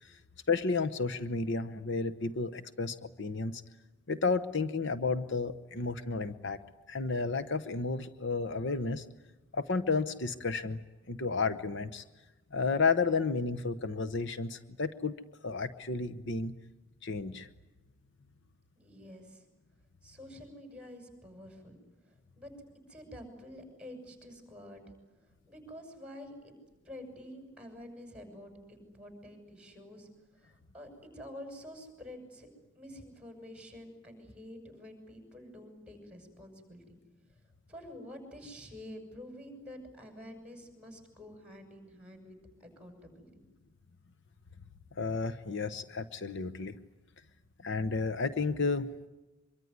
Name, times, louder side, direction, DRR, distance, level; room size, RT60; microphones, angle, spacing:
voice 1, 0.5-3.6 4.1-6.6 6.9-9.0 9.5-10.8 11.1-12.0 12.5-15.2 15.4-16.5 17.0-17.5 45.0-46.7 47.6-48.9, left 4 dB, 60° left, 12 dB, 1.0 m, -32 dB
voice 2, 18.8-19.4 20.0-21.8 22.1-22.5 22.9-24.8 25.5-26.5 26.8-30.1 30.4-32.5 32.7-37.0 37.7-43.4, left 1 dB, 5° right, 6 dB, 6.7 m, -48 dB
25.0 x 23.5 x 9.6 m, 1.1 s
head